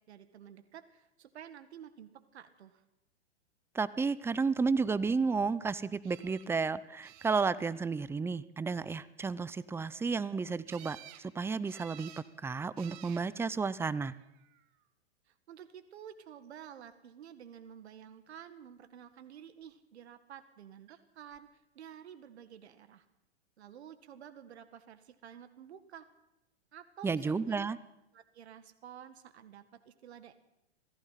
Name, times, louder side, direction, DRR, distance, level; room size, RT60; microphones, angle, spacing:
voice 1, 0.1-2.8 15.3-23.1 23.6-26.1 26.7-27.7 28.1-30.3, right 9 dB, 75° right, 11 dB, 1.9 m, -51 dB
voice 2, 3.7-12.1 12.4-14.2 27.0-27.8, right 4 dB, 5° right, 18 dB, 0.7 m, -32 dB
sound 1, 6.0-6.5 7.0-7.8 10.7-11.3 11.7-12.3 12.8-13.3 14.2-14.7 20.9-21.0 21.3-21.4, right 14 dB, 45° right, 2.1 m, -53 dB
27.0 x 17.5 x 5.9 m, 0.87 s
hypercardioid pair, 125°, 33 cm